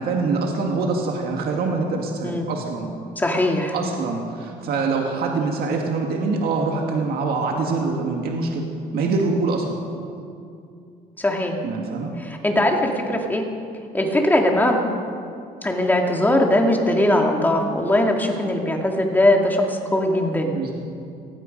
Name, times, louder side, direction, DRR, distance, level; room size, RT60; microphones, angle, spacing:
voice 1, 0.0-2.9 3.7-8.7 8.9-9.8 11.6-12.1 20.5-20.7, right 4 dB, 65° right, 1 dB, 2.0 m, -24 dB
voice 2, 3.2-3.8 11.2-11.6 12.2-13.4 13.9-14.8 15.6-20.7, left 1 dB, 10° left, 1 dB, 2.4 m, -20 dB
17.5 x 15.5 x 5.3 m, 2.4 s
cardioid pair, 110°, 17 cm